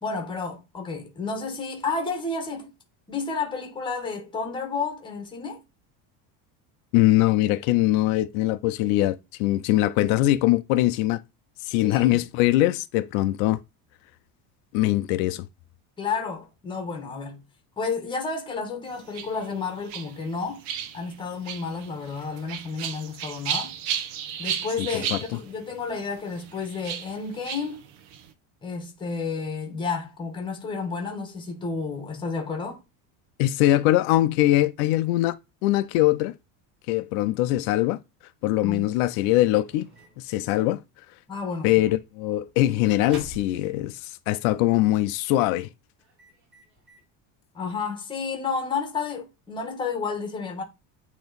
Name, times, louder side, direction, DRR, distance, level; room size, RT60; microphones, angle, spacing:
voice 1, 0.0-2.7 3.1-5.6 11.8-12.2 16.0-17.4 17.8-20.6 20.9-23.7 24.4-27.8 28.6-32.8 38.6-38.8 41.3-41.7 47.5-50.6, left 4 dB, 10° left, 1.1 m, -31 dB
voice 2, 6.9-11.2 11.7-13.6 14.7-15.5 24.8-25.2 33.4-35.4 35.6-36.3 36.9-38.0 38.4-39.9 40.2-40.8 41.6-45.7, left 15 dB, 85° left, 0.7 m, -22 dB
sound 1, 18.9-28.3, right 9 dB, 80° right, 1.0 m, -35 dB
Microwave oven, 38.9-40.3 41.3-41.5 41.8-42.0 42.3-43.7 44.0-44.1 44.8-45.0 45.3-45.6 46.0-47.0, right 1 dB, 30° right, 3.6 m, -47 dB
8.7 x 3.1 x 3.9 m
cardioid pair, 175°, 41 cm